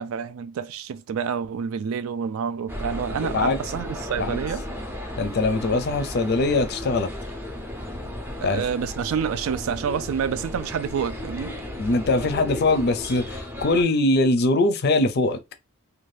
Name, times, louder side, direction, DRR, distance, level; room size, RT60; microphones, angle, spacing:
voice 1, 0.0-4.6 5.7-5.8 8.4-11.5, right 7 dB, 70° right, 0.3 m, -28 dB
sound 1, 2.7-13.8, left 1 dB, 10° right, 0.5 m, -34 dB
voice 2, 3.1-3.6 4.2-4.4 5.2-7.1 8.4-8.6 11.8-15.4, left 2 dB, 50° left, 0.4 m, -22 dB
2.7 x 2.2 x 3.1 m
head